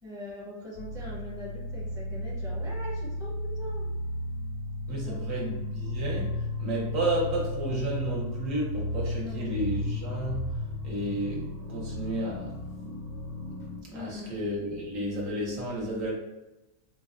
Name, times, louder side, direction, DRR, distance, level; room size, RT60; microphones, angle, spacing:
voice 1, 0.0-3.9 4.9-5.2 9.2-9.7 13.9-14.3, left 1 dB, 5° right, -6 dB, 0.4 m, -42 dB
sound 1, 0.7-13.8, left 1 dB, 60° left, 0.6 m, -34 dB
voice 2, 4.9-12.6 13.8-16.1, right 1 dB, 70° right, -3 dB, 1.2 m, -32 dB
4.5 x 2.1 x 2.4 m, 1.0 s
omnidirectional pair, 1.5 m